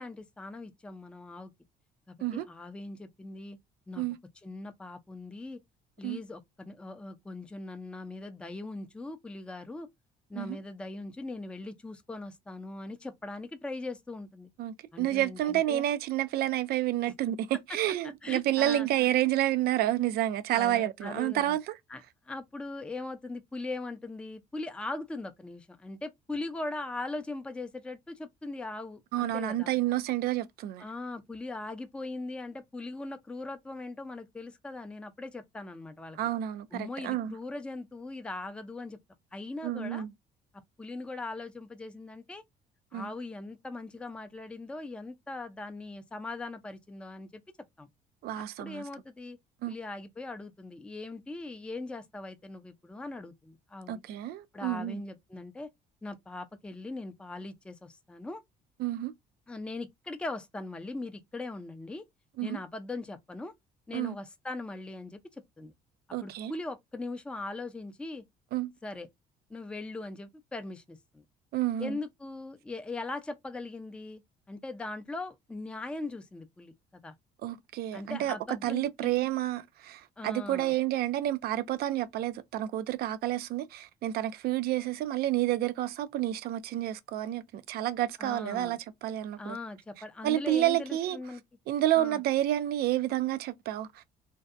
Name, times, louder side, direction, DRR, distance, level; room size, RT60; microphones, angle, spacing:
voice 1, 0.0-1.5 2.1-3.6 3.9-4.0 4.4-5.6 6.0-9.9 10.3-14.5 14.9-15.8 17.1-17.2 18.2-18.9 20.5-21.6 21.9-29.7 30.8-36.2 36.7-39.0 39.3-40.1 40.8-42.4 42.9-47.4 47.8-47.9 48.3-49.4 49.7-54.0 54.5-55.7 56.0-58.4 59.5-62.0 62.4-63.5 63.9-65.7 66.2-68.2 68.8-69.1 69.5-71.2 71.8-74.2 74.5-77.1 77.9-79.1 80.2-80.7 88.2-88.8 89.4-91.4 91.9-92.2, left 2 dB, 5° left, 0.4 m, -40 dB
voice 2, 14.6-21.7 29.1-30.8 36.2-37.3 39.6-40.1 42.9-43.1 48.2-48.8 49.6-49.8 53.9-55.0 58.8-59.1 62.4-62.6 63.9-64.2 66.1-66.5 68.5-68.7 71.5-72.0 77.4-78.4 78.6-89.6 90.2-91.2 91.7-94.0, right 13 dB, 65° right, 0.4 m, -29 dB
2.6 x 2.1 x 2.4 m
cardioid pair, 110°, 17 cm